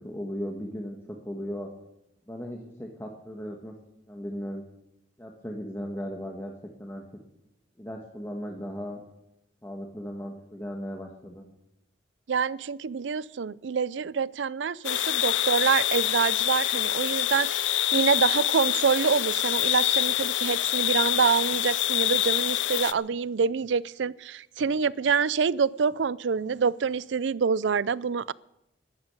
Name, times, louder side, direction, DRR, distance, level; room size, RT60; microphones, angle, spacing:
voice 1, 0.0-1.7 2.3-3.7 4.1-4.6 5.2-6.5 6.8-7.0 7.8-9.0 9.6-11.5, equal, 15° left, 1 dB, 1.5 m, -36 dB
voice 2, 12.3-28.3, right 6 dB, 80° right, 21 dB, 0.5 m, -26 dB
sound 1, 14.8-22.9, left 14 dB, 90° left, 0.5 m, -26 dB
12.5 x 12.0 x 8.2 m, 0.87 s
head